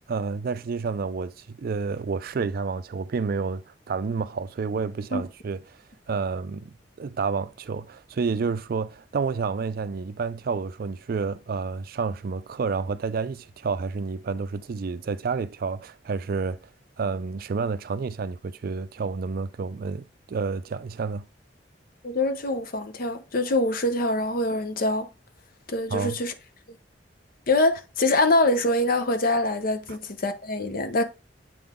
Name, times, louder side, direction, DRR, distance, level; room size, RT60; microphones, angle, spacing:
voice 1, 0.1-16.6 17.0-21.3 25.9-26.2 29.9-30.0, right 5 dB, 55° right, 0.4 m, -30 dB
voice 2, 22.0-25.1 25.7-26.3 27.5-31.0, left 2 dB, 50° left, 0.7 m, -24 dB
7.7 x 3.8 x 3.6 m
head